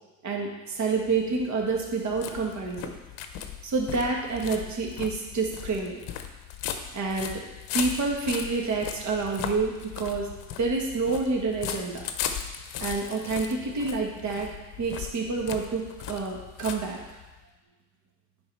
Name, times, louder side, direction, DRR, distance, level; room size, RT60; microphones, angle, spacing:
voice 1, 0.2-2.9 3.6-6.0 6.9-7.4 7.7-10.3 10.6-12.1 12.8-17.0, right 4 dB, 35° right, 0 dB, 1.5 m, -28 dB
sound 1, 0.9-17.4, left 9 dB, 55° left, 0.9 m, -38 dB
9.8 x 3.9 x 4.6 m, 1.1 s
supercardioid pair, 95°, 49 cm